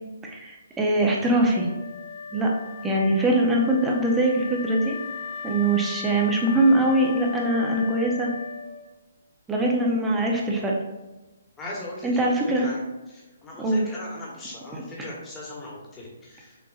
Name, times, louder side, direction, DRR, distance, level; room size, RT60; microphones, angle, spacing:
voice 1, 0.3-1.7 2.3-2.5 2.8-5.0 5.4-8.3 9.5-10.7 12.0-12.7 13.6-13.8 14.7-15.1, right 1 dB, 10° right, -1 dB, 0.8 m, -22 dB
Wind instrument woodwind instrument, 1.5-9.1, left 6 dB, 40° left, 0.4 m, -38 dB
voice 2, 11.6-12.2 12.5-12.8 13.1-16.6, left 2 dB, 15° left, -4 dB, 1.3 m, -39 dB
6.4 x 2.7 x 2.5 m, 1.1 s
figure-of-eight pair, 140°, 0 cm